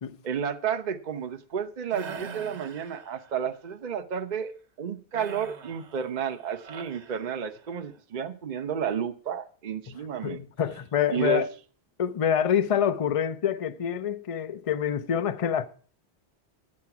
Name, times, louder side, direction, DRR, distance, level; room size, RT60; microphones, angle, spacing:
voice 1, 0.2-10.4 11.1-11.4, right 7 dB, 45° right, 0.8 m, -31 dB
sound 1, 1.9-3.5 5.1-7.8, right 6 dB, 90° right, 1.2 m, -43 dB
voice 2, 10.2-11.5 12.0-15.6, left 9 dB, 40° left, 0.6 m, -26 dB
9.7 x 8.6 x 5.8 m
omnidirectional pair, 1.1 m